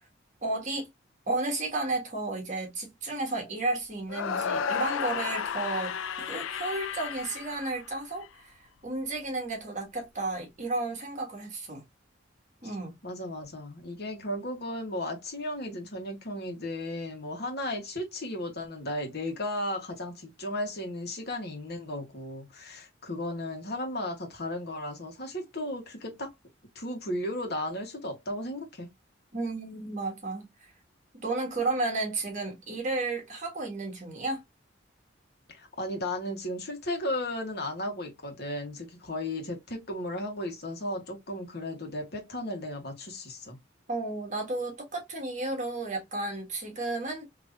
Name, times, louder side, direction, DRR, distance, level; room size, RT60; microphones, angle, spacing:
voice 1, 0.4-0.9 1.3-8.5 8.8-11.8 12.6-12.9 29.3-30.5 31.2-34.4 43.9-47.2, right 2 dB, 40° right, 1.5 m, -32 dB
sound 1, 4.1-8.3, left 7 dB, 85° left, 0.4 m, -33 dB
voice 2, 13.0-26.3 26.7-28.9 35.5-43.6, left 1 dB, 55° left, 1.3 m, -35 dB
3.7 x 2.9 x 2.6 m
head